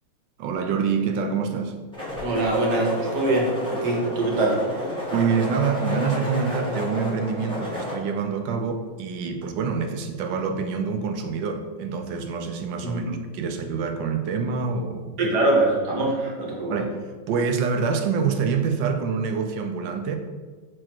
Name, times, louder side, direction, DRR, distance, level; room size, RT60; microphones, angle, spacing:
voice 1, 0.4-1.7 5.1-15.4 16.7-17.0 17.3-20.2, right 5 dB, 90° right, 6 dB, 1.4 m, -26 dB
sound 1, 1.9-7.9, left 1 dB, 5° left, 1.7 m, -31 dB
voice 2, 2.2-4.6 12.8-13.1 15.2-16.8, right 2 dB, 65° right, -2 dB, 1.8 m, -23 dB
6.4 x 4.3 x 4.4 m, 1.4 s
omnidirectional pair, 2.0 m